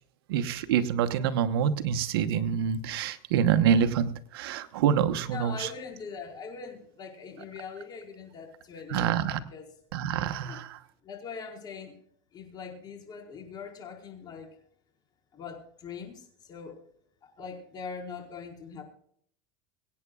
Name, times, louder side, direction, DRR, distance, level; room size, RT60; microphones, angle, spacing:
voice 1, 0.3-5.7 8.9-9.4 9.9-10.8, right 8 dB, 85° right, 9 dB, 1.1 m, -26 dB
voice 2, 5.3-9.6 10.4-10.6 11.0-12.0 12.3-14.5 15.3-16.8 17.2-18.8, left 5 dB, 35° left, 1 dB, 4.7 m, -42 dB
25.0 x 9.4 x 2.4 m, 0.63 s
supercardioid pair, 120°, 12 cm